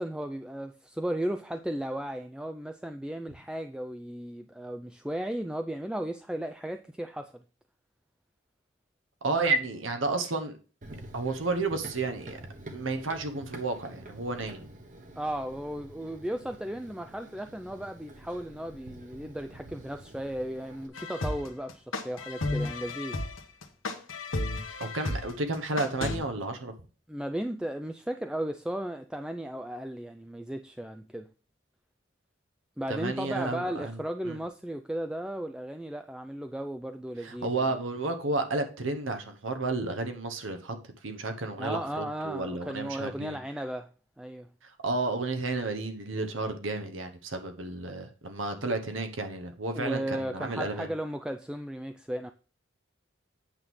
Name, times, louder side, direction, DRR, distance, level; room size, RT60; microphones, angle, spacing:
voice 1, 0.0-7.4 15.2-23.2 27.1-31.3 32.8-37.6 41.6-43.9 44.2-44.5 49.7-52.3, right 1 dB, 5° right, 0.3 m, -35 dB
voice 2, 9.2-10.5 11.1-12.4 12.7-14.7 24.8-26.7 32.9-34.0 34.2-34.4 37.2-40.8 41.0-43.4 44.6-50.9, right 3 dB, 75° right, 1.1 m, -32 dB
Run, 10.8-20.9, right 1 dB, 40° right, 1.3 m, -48 dB
sound 1, 21.0-26.2, left 2 dB, 90° left, 1.2 m, -33 dB
8.8 x 6.2 x 3.6 m
head